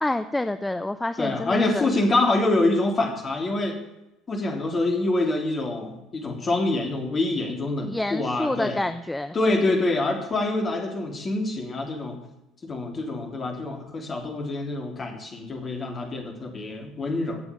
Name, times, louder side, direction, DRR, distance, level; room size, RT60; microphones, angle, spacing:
voice 1, 0.0-1.9 7.8-9.8, left 1 dB, 10° left, 10 dB, 0.7 m, -28 dB
voice 2, 1.2-3.8 4.3-8.8 9.3-12.2 12.6-17.4, left 2 dB, 30° left, 2 dB, 3.5 m, -26 dB
16.5 x 7.1 x 8.9 m, 0.89 s
figure-of-eight pair, 60°, 0 cm